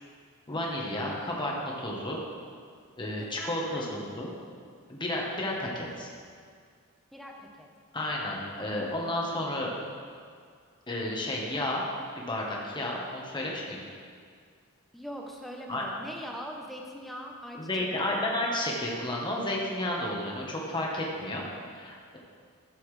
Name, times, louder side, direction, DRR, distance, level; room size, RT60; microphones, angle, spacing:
voice 1, 0.5-2.2 3.0-4.3 4.9-6.1 7.9-9.7 10.9-11.8 12.2-13.8 15.7-15.8 17.5-21.4 21.7-22.2, left 1 dB, 20° left, -3 dB, 1.3 m, -32 dB
voice 2, 3.2-4.0 7.1-7.7 14.9-18.3, equal, ahead, 0 dB, 0.9 m, -42 dB
13.0 x 7.0 x 3.3 m, 2.1 s
head